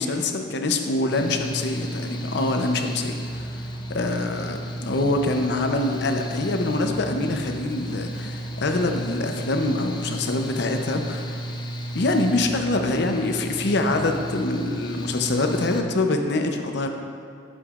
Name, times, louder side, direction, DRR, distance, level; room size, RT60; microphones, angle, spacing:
voice 1, 0.0-3.6 3.9-11.4 11.9-16.9, left 2 dB, 65° left, 4 dB, 0.6 m, -25 dB
Mechanical fan, 1.1-15.8, right 1 dB, 25° left, 0.6 m, -33 dB
11.5 x 6.9 x 2.4 m, 2.3 s
head